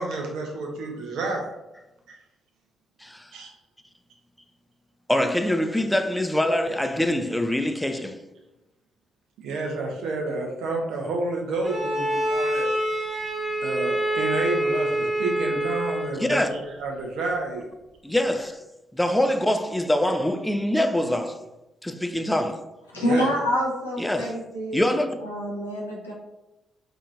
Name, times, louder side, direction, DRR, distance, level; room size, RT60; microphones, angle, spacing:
voice 1, 0.0-1.5 2.1-2.2 3.3-3.5 9.4-12.7 13.6-17.7 23.0-23.3, right 2 dB, 65° right, 0.5 m, -30 dB
voice 2, 3.0-3.3 5.1-8.2 16.1-16.5 18.0-18.6 18.9-21.4 21.8-22.7 24.0-24.4 24.7-25.2, left 1 dB, 5° left, 0.3 m, -24 dB
Bowed string instrument, 11.6-16.2, right 1 dB, 20° right, 1.2 m, -26 dB
voice 3, 22.9-24.8 25.2-26.1, equal, 85° left, 0.5 m, -27 dB
2.9 x 2.5 x 2.4 m
figure-of-eight pair, 40°, 0 cm